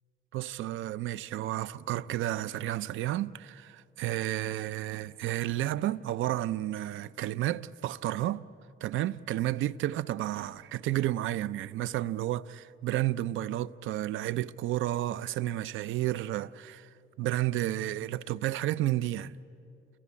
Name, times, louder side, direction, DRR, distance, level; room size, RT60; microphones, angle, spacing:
voice 1, 0.3-8.4 8.8-16.9 17.2-19.3, right 14 dB, 85° right, 0.6 m, -31 dB
30.0 x 23.5 x 8.5 m
cardioid pair, 90°, 20 cm